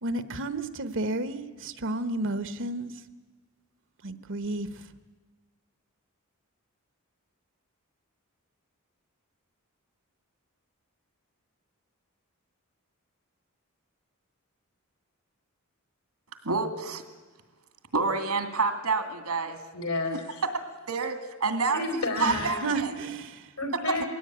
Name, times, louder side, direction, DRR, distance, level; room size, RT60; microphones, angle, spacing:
voice 1, 0.0-2.9 4.0-4.9 22.2-23.5, right 2 dB, 60° right, 12 dB, 1.2 m, -32 dB
voice 2, 16.4-17.0 17.9-19.6 20.9-21.1 21.4-22.9, right 4 dB, 80° right, 8 dB, 2.4 m, -28 dB
voice 3, 19.7-20.4 21.7-22.6 23.6-24.1, left 2 dB, 75° left, 5 dB, 4.7 m, -31 dB
22.0 x 17.0 x 9.4 m, 1.4 s
head